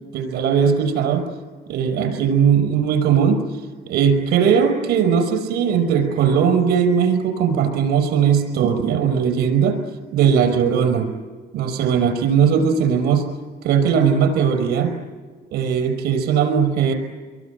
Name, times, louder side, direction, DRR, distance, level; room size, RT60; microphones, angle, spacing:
voice 1, 0.1-1.3 1.7-3.4 3.9-9.8 10.1-11.1 11.5-13.2 13.6-14.9 15.5-16.9, right 7 dB, 85° right, 7 dB, 5.3 m, -18 dB
25.5 x 22.5 x 9.3 m, 1.5 s
cardioid pair, 110°, 17 cm